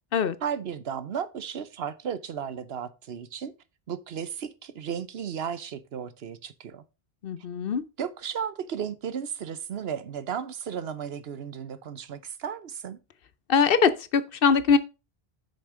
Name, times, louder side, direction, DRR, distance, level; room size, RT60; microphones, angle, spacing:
voice 1, 0.4-3.5 3.9-6.8 8.0-13.0, right 8 dB, 75° right, 1.0 m, -34 dB
voice 2, 7.2-7.8 13.5-14.8, left 6 dB, 65° left, 0.9 m, -22 dB
8.3 x 6.6 x 3.7 m
omnidirectional pair, 1.0 m